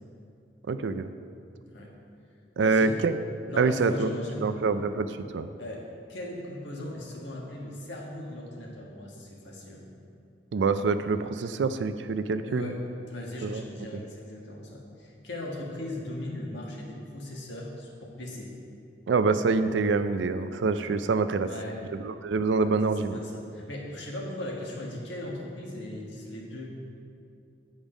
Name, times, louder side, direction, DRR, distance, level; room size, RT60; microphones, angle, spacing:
voice 1, 0.7-1.1 2.6-3.1 3.6-4.1 4.4-5.5 10.5-12.7 13.4-13.6 13.9-14.0 19.1-21.5 22.0-23.2, right 4 dB, 80° right, 10 dB, 0.4 m, -26 dB
voice 2, 2.5-3.0 3.5-4.6 5.6-9.9 12.4-12.8 13.1-18.5 21.5-21.8 22.6-26.7, left 1 dB, 85° left, -2 dB, 1.5 m, -38 dB
8.9 x 5.2 x 5.0 m, 2.5 s
head